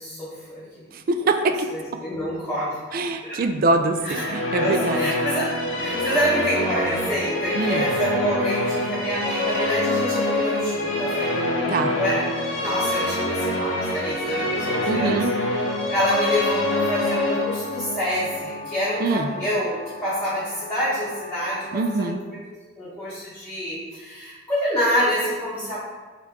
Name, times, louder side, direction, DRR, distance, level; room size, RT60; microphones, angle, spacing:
voice 1, 0.0-0.8 1.7-2.8 3.2-3.4 4.0-5.5 5.8-12.3 12.6-15.2 15.9-21.7 22.0-22.1 22.8-25.8, equal, 5° left, -12 dB, 1.0 m, -27 dB
voice 2, 0.9-1.7 2.9-5.1 7.6-7.8 11.7-12.0 14.9-15.3 19.0-19.3 21.7-22.2, right 2 dB, 45° right, 7 dB, 0.3 m, -23 dB
Musical instrument, 3.9-19.3, left 1 dB, 70° left, 0.7 m, -26 dB
sound 1, 15.9-22.2, left 3 dB, 40° left, 0.4 m, -39 dB
4.1 x 2.8 x 4.5 m, 1.4 s
head